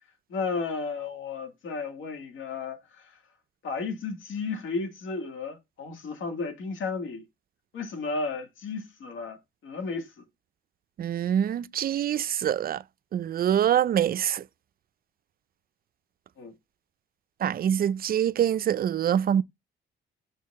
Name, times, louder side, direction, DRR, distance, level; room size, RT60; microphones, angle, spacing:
voice 1, 0.3-3.2 3.6-7.2 7.7-10.2 16.4-16.5, left 4 dB, 75° left, 1.9 m, -33 dB
voice 2, 11.0-12.8 13.1-14.4 17.4-19.4, right 9 dB, 50° right, 0.4 m, -25 dB
6.5 x 4.6 x 3.6 m
cardioid pair, 90°, 20 cm